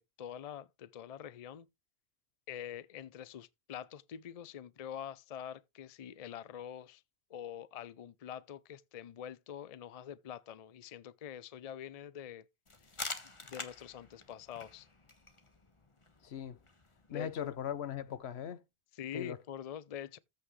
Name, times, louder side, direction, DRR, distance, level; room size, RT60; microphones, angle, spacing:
voice 1, 0.0-1.7 2.5-7.0 7.3-12.5 13.4-14.9 17.1-17.6 18.9-20.2, left 9 dB, 45° left, 0.5 m, -45 dB
sound 1, 12.7-18.2, left 3 dB, 30° left, 1.4 m, -47 dB
voice 2, 16.2-16.6 17.1-18.6 19.1-19.4, left 9 dB, 80° left, 1.1 m, -39 dB
14.5 x 5.7 x 3.2 m
omnidirectional pair, 1.1 m